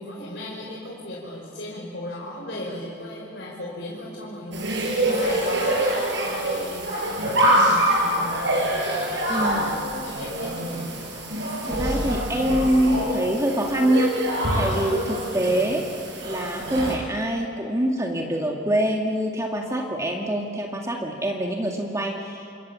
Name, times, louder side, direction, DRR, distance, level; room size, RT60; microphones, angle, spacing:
voice 1, 0.0-8.4 9.4-11.0, left 1 dB, 65° left, -4 dB, 5.2 m, -37 dB
sound 1, 4.5-17.0, right 1 dB, 65° right, 6.5 m, -25 dB
voice 2, 9.3-9.6 11.7-15.9 16.2-22.5, right 1 dB, 15° right, 0 dB, 2.0 m, -25 dB
28.5 x 28.0 x 7.4 m, 2.5 s
head